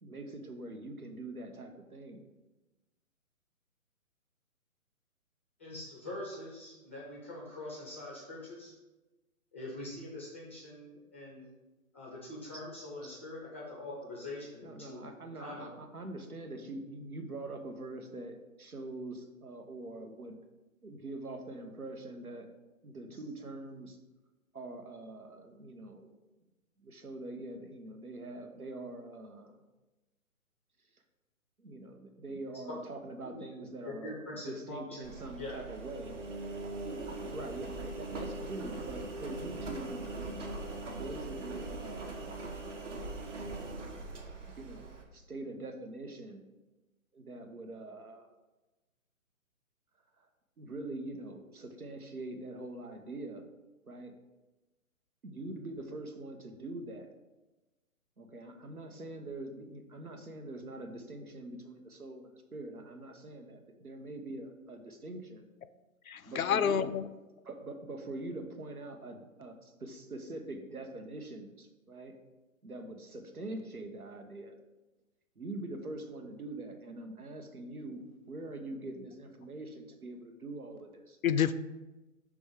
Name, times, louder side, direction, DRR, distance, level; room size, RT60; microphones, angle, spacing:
voice 1, 0.0-2.3 13.0-13.1 14.6-20.4 20.8-22.5 22.8-24.0 24.5-26.1 26.8-29.6 31.6-36.2 36.8-40.1 40.9-42.3 44.6-46.4 47.1-48.3 50.2-50.3 50.6-53.4 53.8-54.1 55.2-57.1 58.2-65.5 66.3-66.9 67.4-72.1 72.6-74.6 75.4-81.2, right 2 dB, 90° right, 5 dB, 1.1 m, -44 dB
voice 2, 5.6-8.7 9.5-11.5 11.9-15.1 15.4-15.7 33.2-35.1 35.4-35.5, left 2 dB, 10° left, -3 dB, 0.5 m, -44 dB
Engine, 35.0-45.0, right 2 dB, 60° right, 1.2 m, -41 dB
voice 3, 66.1-67.0 81.2-81.5, left 8 dB, 70° left, 13 dB, 0.5 m, -28 dB
6.1 x 3.5 x 5.1 m, 1.1 s
figure-of-eight pair, 135°, 42 cm